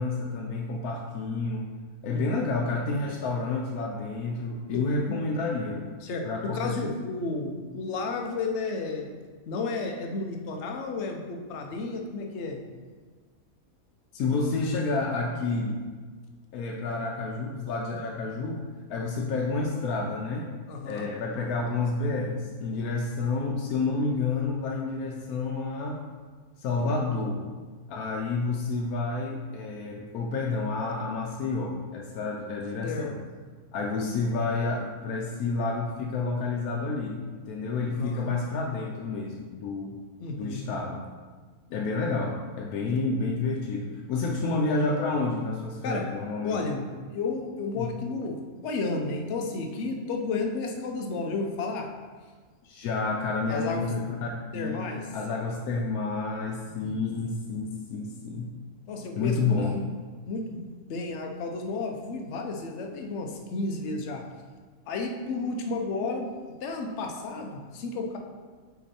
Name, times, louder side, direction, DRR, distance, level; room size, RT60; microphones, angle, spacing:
voice 1, 0.0-1.7 2.0-5.9 6.2-6.9 14.1-15.8 16.5-18.6 18.9-20.5 20.9-26.0 26.6-27.4 27.9-33.1 33.7-40.0 40.4-41.0 41.7-46.6 47.8-47.9 52.6-58.5 59.2-59.8, left 3 dB, 80° left, -1 dB, 1.1 m, -29 dB
voice 2, 6.0-9.1 9.5-12.6 20.7-21.1 26.8-26.9 32.8-33.2 37.9-38.3 40.2-40.7 42.8-43.1 44.2-44.4 45.8-46.0 46.4-48.4 48.6-51.9 53.5-53.9 54.5-55.1 56.6-57.0 58.9-59.7 60.3-60.6 60.9-64.2 64.9-66.3 66.6-68.2, left 3 dB, 55° left, 2 dB, 0.9 m, -32 dB
5.8 x 3.9 x 4.2 m, 1.4 s
omnidirectional pair, 1.5 m